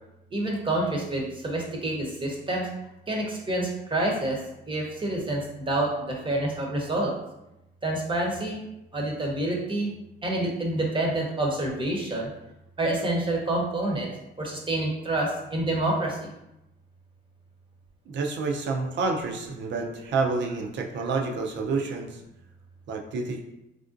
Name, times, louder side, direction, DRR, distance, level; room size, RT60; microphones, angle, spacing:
voice 1, 0.3-2.7 3.1-4.4 4.7-7.1 7.8-8.6 8.9-9.9 10.2-12.3 12.8-14.1 14.4-16.2, right 1 dB, 25° right, -2 dB, 0.8 m, -27 dB
voice 2, 18.1-22.2 22.9-23.4, right 4 dB, 65° right, 2 dB, 0.5 m, -29 dB
3.3 x 2.5 x 2.5 m, 0.89 s
cardioid pair, 90°, 20 cm